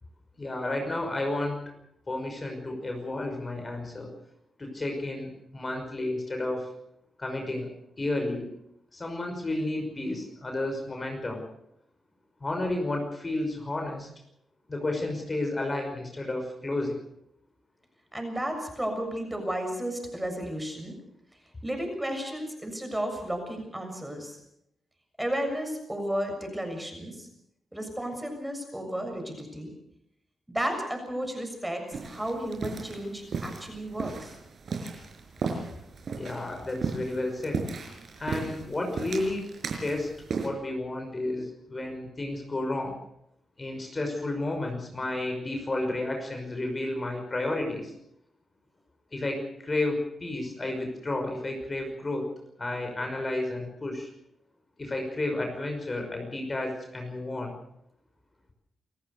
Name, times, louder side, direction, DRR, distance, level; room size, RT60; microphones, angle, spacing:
voice 1, 0.4-1.6 2.1-4.1 4.6-6.7 7.2-7.7 8.0-8.5 8.9-11.4 12.4-14.1 14.7-17.0 36.1-37.6 38.2-39.5 39.8-40.1 40.4-43.0 43.6-47.9 49.1-52.3 52.6-54.1 54.8-57.5, left 2 dB, 30° left, 4 dB, 5.6 m, -31 dB
voice 2, 18.1-21.0 21.6-24.4 25.2-27.3 27.7-29.7 30.5-34.4, right 1 dB, 10° right, 4 dB, 6.9 m, -33 dB
sound 1, 31.9-40.5, right 4 dB, 60° right, 5.4 m, -36 dB
28.0 x 14.5 x 6.7 m, 0.76 s
cardioid pair, 80°, 0 cm